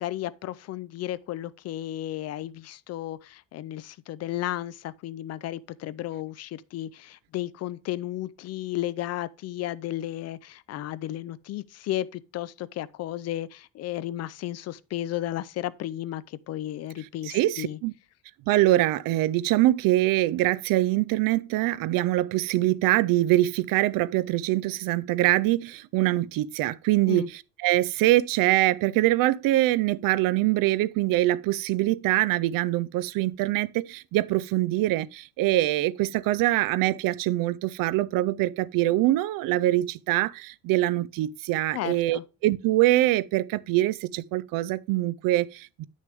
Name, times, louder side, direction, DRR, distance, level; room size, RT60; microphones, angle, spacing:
voice 1, 0.0-17.8 27.1-27.3 41.7-42.2, left 13 dB, 50° left, 0.4 m, -33 dB
voice 2, 17.3-17.9 18.5-45.8, right 16 dB, 85° right, 0.5 m, -24 dB
9.2 x 6.4 x 3.4 m
cardioid pair, 160°, 33 cm